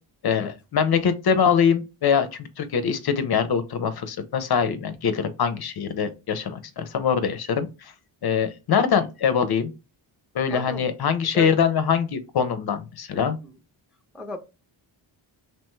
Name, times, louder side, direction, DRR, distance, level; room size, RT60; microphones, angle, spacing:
voice 1, 0.2-7.9 8.2-9.7 10.3-13.4, left 7 dB, 50° left, 10 dB, 0.5 m, -23 dB
voice 2, 10.5-10.9 11.3-11.6 13.4-13.6 14.1-14.4, left 1 dB, 5° right, 4 dB, 0.4 m, -35 dB
3.0 x 2.2 x 3.0 m, 0.28 s
cardioid pair, 65°, 50 cm